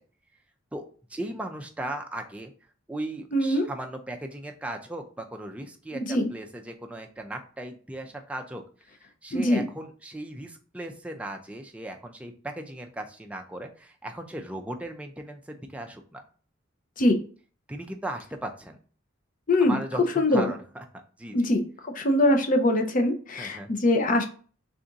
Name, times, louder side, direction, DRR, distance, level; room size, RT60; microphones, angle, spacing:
voice 1, 0.7-2.5 2.9-8.6 9.2-16.2 17.7-18.8 19.6-20.8 21.2-21.5 23.4-23.7, right 1 dB, 5° right, 3 dB, 0.4 m, -37 dB
voice 2, 3.3-3.7 5.9-6.3 9.3-9.7 17.0-17.2 19.5-19.8 20.2-20.5 21.3-24.3, left 1 dB, 40° left, 4 dB, 0.6 m, -23 dB
3.4 x 2.6 x 3.9 m, 0.41 s
head